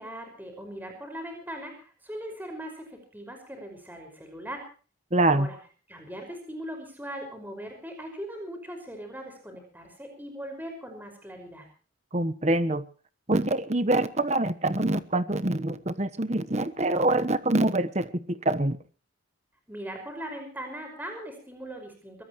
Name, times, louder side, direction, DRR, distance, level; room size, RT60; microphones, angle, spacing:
voice 1, 0.0-4.6 5.2-5.6 5.9-11.7 19.7-22.2, right 1 dB, 10° right, 4 dB, 5.4 m, -40 dB
voice 2, 5.1-5.5 12.1-12.8 13.3-18.8, right 2 dB, 35° right, 12 dB, 1.1 m, -25 dB
23.0 x 18.5 x 3.1 m, 0.40 s
head